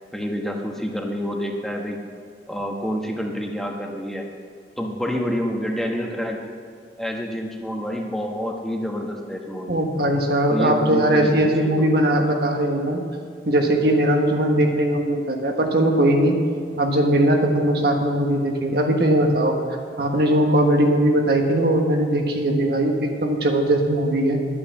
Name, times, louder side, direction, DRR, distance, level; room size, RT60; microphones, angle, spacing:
voice 1, 0.1-2.0 2.5-4.3 4.8-6.5 7.0-9.8 10.5-12.0, equal, ahead, 1 dB, 1.2 m, -28 dB
voice 2, 9.7-13.0 13.4-16.4 16.8-19.5 20.0-24.4, right 1 dB, 65° right, 2 dB, 1.4 m, -20 dB
11.5 x 8.7 x 7.2 m, 2.1 s
head